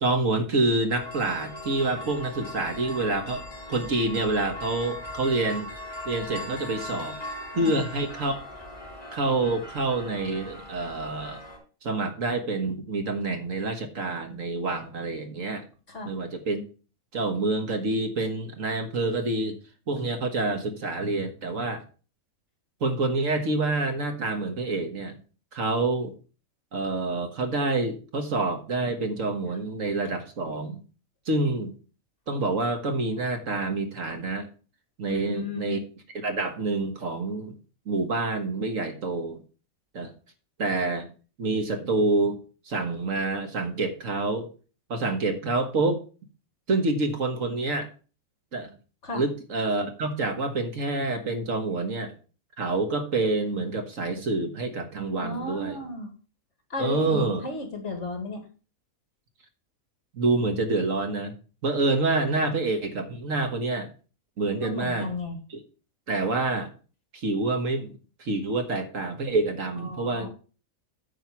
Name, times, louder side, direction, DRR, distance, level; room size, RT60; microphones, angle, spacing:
voice 1, 0.0-3.4 3.7-5.7 6.1-7.2 7.6-8.4 9.1-11.4 11.8-15.6 16.1-16.7 17.1-19.6 19.9-21.8 22.8-25.2 25.5-26.1 26.7-30.8 31.3-31.7 32.3-34.5 35.0-35.8 36.1-37.5 37.9-39.4 39.9-40.1 40.6-41.1 41.4-42.4 42.7-44.5 44.9-46.0 46.7-47.9 48.5-48.7 49.1-52.1 52.6-55.8 56.8-57.4 60.1-61.3 61.6-63.9 64.4-65.1 66.1-66.7 67.1-70.3, right 3 dB, 65° right, 6 dB, 1.8 m, -27 dB
sound 1, 0.9-11.6, left 1 dB, 20° left, 4.7 m, -39 dB
voice 2, 35.1-35.8 49.0-49.2 55.2-56.1 56.7-58.4 64.6-65.4 69.8-70.3, left 2 dB, 55° left, 4 dB, 2.4 m, -34 dB
9.2 x 5.1 x 6.0 m, 0.36 s
omnidirectional pair, 1.5 m